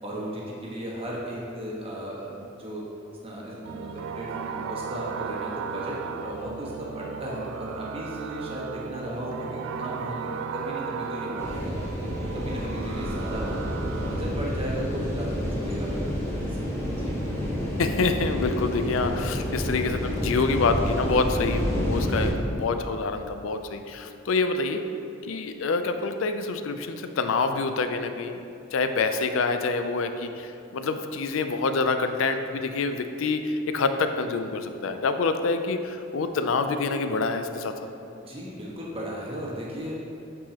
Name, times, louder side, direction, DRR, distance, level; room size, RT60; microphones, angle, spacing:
voice 1, 0.0-2.8 3.2-11.7 12.3-13.7 14.0-17.2 38.1-40.0, right 1 dB, 30° right, -5 dB, 1.2 m, -36 dB
sound 1, 3.6-14.3, right 6 dB, 85° right, 0.3 m, -35 dB
sound 2, 11.4-22.3, equal, 15° left, 1.1 m, -29 dB
voice 2, 17.8-24.8 25.2-28.4 28.7-37.7, left 4 dB, 80° left, 8 dB, 0.4 m, -26 dB
8.6 x 4.7 x 2.9 m, 2.6 s
head